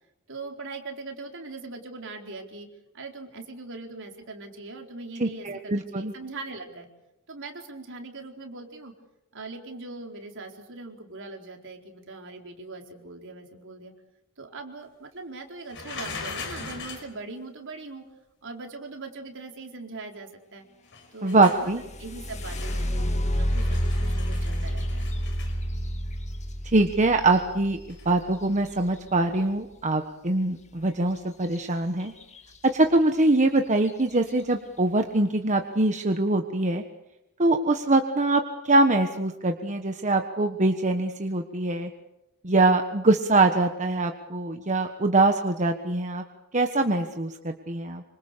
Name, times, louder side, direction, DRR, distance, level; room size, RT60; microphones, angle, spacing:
voice 1, 0.3-2.7 2.9-6.9 7.3-8.9 9.3-13.9 14.4-18.0 18.4-20.6 21.1-21.7 22.0-25.1, right 3 dB, 60° right, 2 dB, 4.3 m, -41 dB
voice 2, 5.2-6.1 21.2-21.8 26.6-27.8 28.0-32.1 32.7-36.8 37.4-41.9 42.4-46.2 46.5-48.0, right 2 dB, 35° right, 5 dB, 1.4 m, -23 dB
sound 1, 15.7-17.1 20.9-21.7 22.3-23.0 23.3-25.6 27.9-28.1, left 4 dB, 60° left, 6.0 m, -40 dB
sound 2, 21.5-29.3 31.4-31.6 32.0-32.6 33.2-33.3 33.8-34.1, equal, 35° left, 2.1 m, -29 dB
27.0 x 25.5 x 6.9 m, 0.88 s
head